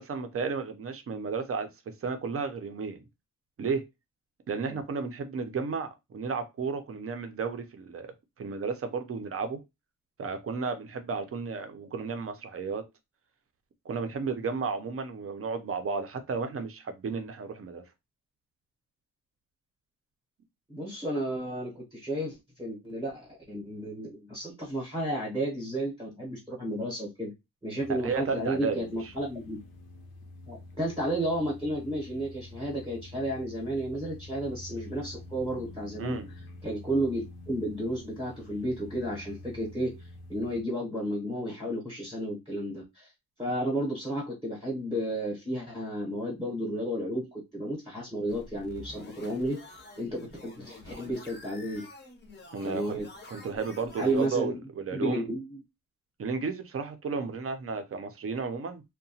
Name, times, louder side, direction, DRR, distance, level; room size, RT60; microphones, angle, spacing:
voice 1, 0.0-1.7 2.0-3.0 3.6-3.8 4.5-8.1 8.4-9.6 10.2-12.8 13.9-17.8 27.9-28.8 36.0-36.3 52.5-53.0 53.3-55.3 56.2-58.8, right 5 dB, 40° right, 0.5 m, -33 dB
voice 2, 20.7-27.3 27.6-29.6 30.5-36.2 36.6-39.9 40.3-43.1 43.4-49.6 50.0-51.9 52.6-53.1 54.0-54.6 54.9-55.6, right 1 dB, 15° right, 0.8 m, -32 dB
sound 1, 27.8-40.6, left 2 dB, 80° left, 0.7 m, -47 dB
sound 2, 48.3-54.3, left 2 dB, 30° left, 0.5 m, -48 dB
2.8 x 2.1 x 2.7 m
wide cardioid pair, 175°, 37 cm